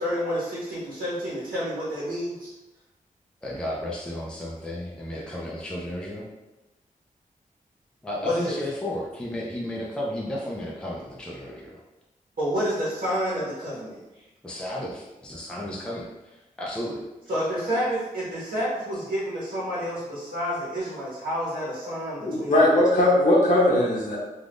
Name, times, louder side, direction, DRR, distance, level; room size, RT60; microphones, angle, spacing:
voice 1, 0.0-2.5 8.2-8.5 12.4-14.0 17.3-22.8, equal, 85° right, -8 dB, 1.0 m, -29 dB
voice 2, 3.4-6.3 8.0-11.8 14.4-17.0, left 1 dB, 5° left, -4 dB, 0.4 m, -33 dB
voice 3, 22.2-24.2, left 1 dB, 60° left, -5 dB, 0.7 m, -19 dB
2.4 x 2.4 x 3.4 m, 1.0 s
wide cardioid pair, 145°, 14 cm